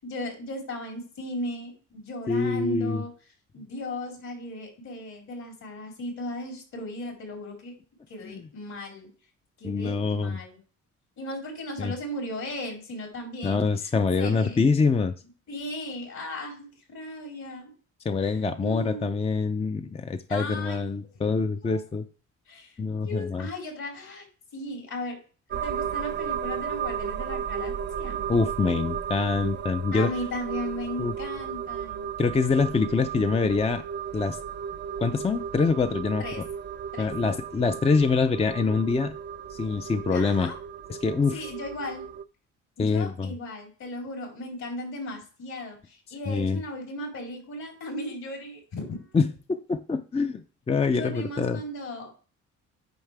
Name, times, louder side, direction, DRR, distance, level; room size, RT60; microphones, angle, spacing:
voice 1, 0.0-3.1 3.5-7.7 8.1-9.1 9.6-10.6 11.2-13.6 14.2-14.6 15.5-17.7 18.2-19.1 20.3-21.0 21.6-21.8 22.5-22.8 23.0-24.3 24.5-25.2 25.5-28.2 29.9-32.1 36.2-36.4 36.9-37.1 40.1-40.6 41.3-42.1 42.8-49.2 50.9-52.1, left 1 dB, 65° left, 0 dB, 4.2 m, -36 dB
voice 2, 2.3-3.0 3.6-3.7 8.2-8.5 9.6-10.4 11.8-11.9 13.4-15.1 18.0-22.1 22.8-23.5 28.3-30.1 31.0-31.1 32.2-33.8 34.1-34.4 35.0-36.2 37.0-39.1 39.5-40.5 40.9-41.5 42.8-43.3 46.3-46.6 49.1-51.6, left 4 dB, 20° left, 8 dB, 0.5 m, -25 dB
sound 1, 25.5-42.2, right 8 dB, 35° right, 0.5 m, -34 dB
9.3 x 5.7 x 3.4 m, 0.38 s
cardioid pair, 90°, 30 cm